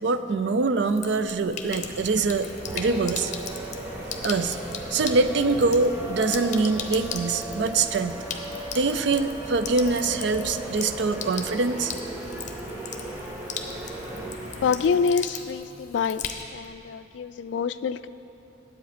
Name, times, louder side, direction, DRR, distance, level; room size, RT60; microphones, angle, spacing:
voice 1, 0.0-3.3 4.2-4.6 4.9-8.2 8.7-11.9, right 3 dB, 70° right, 11 dB, 0.4 m, -24 dB
Sink (filling or washing), 0.8-16.7, left 6 dB, 40° left, 0.7 m, -39 dB
sound 1, 1.6-14.8, equal, 40° right, 1.4 m, -42 dB
sound 2, 2.6-14.4, right 2 dB, 15° right, 0.6 m, -37 dB
voice 2, 14.6-16.2 16.5-18.1, left 6 dB, 75° left, 14 dB, 0.3 m, -26 dB
10.5 x 7.8 x 5.0 m, 2.9 s
head